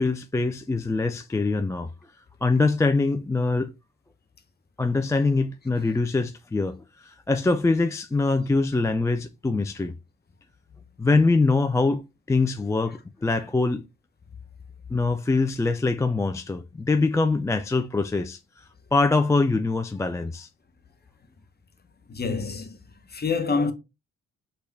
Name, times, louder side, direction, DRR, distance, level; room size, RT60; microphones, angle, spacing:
voice 1, 0.0-1.9 2.4-3.7 4.8-9.9 11.0-12.0 12.3-13.8 14.9-18.6 18.9-20.5, left 3 dB, 10° left, 0.3 m, -23 dB
voice 2, 22.1-22.8 23.1-23.7, left 4 dB, 25° left, 0.9 m, -26 dB
6.2 x 2.3 x 3.3 m
hypercardioid pair, 50°, 35 cm